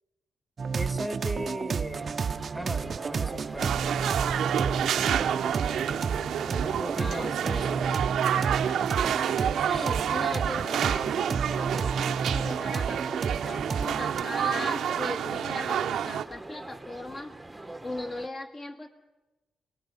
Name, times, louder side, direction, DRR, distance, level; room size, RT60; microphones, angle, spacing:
sound 1, 0.6-14.2, right 5 dB, 45° right, 0.7 m, -31 dB
voice 1, 0.7-2.2 2.5-3.8 6.5-8.0, equal, 5° left, 8 dB, 1.6 m, -38 dB
sound 2, 1.9-18.3, right 2 dB, 15° right, 1.1 m, -45 dB
sound 3, 3.6-16.2, right 9 dB, 80° right, 0.9 m, -29 dB
voice 2, 7.0-7.9 9.4-17.4 17.8-18.9, left 2 dB, 35° left, 3 dB, 1.9 m, -38 dB
28.5 x 19.0 x 5.6 m, 1.1 s
cardioid pair, 95°, 0 cm